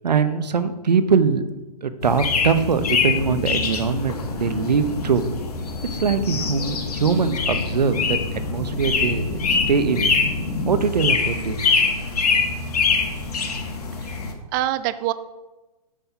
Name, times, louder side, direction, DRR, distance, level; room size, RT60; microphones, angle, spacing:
voice 1, 0.0-1.4 1.8-5.3 5.9-10.1 10.7-11.9, right 5 dB, 90° right, 11 dB, 0.8 m, -22 dB
sound 1, 2.0-14.3, left 4 dB, 70° left, 1.8 m, -24 dB
voice 2, 14.5-15.1, right 14 dB, 30° right, 14 dB, 0.3 m, -25 dB
8.4 x 5.6 x 5.8 m, 1.1 s
hypercardioid pair, 125°, 21 cm